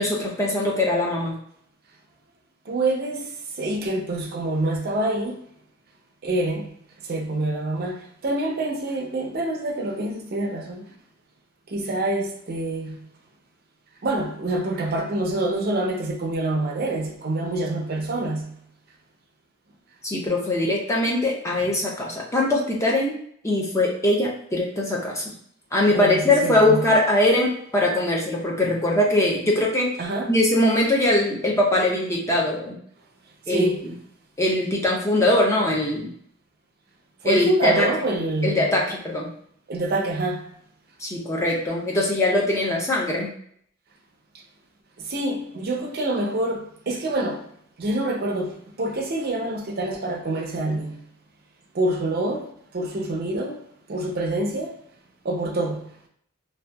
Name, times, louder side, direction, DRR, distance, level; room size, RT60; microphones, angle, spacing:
voice 1, 0.0-1.3 20.0-23.1 23.4-25.2 25.7-29.9 30.3-32.8 33.5-33.9 34.4-36.1 37.2-37.9 38.4-39.3 41.0-43.3, left 1 dB, 15° left, 0.4 m, -21 dB
voice 2, 2.7-3.3 3.6-5.4 6.2-6.7 7.0-10.8 11.7-13.0 14.0-18.6 25.9-26.9 30.0-30.3 33.5-33.8 37.2-38.8 39.7-40.5 45.1-47.5 47.8-51.0 51.7-52.5 52.7-53.6 53.9-54.7 55.2-55.9, right 1 dB, 45° right, 0.5 m, -26 dB
2.7 x 2.2 x 2.2 m
head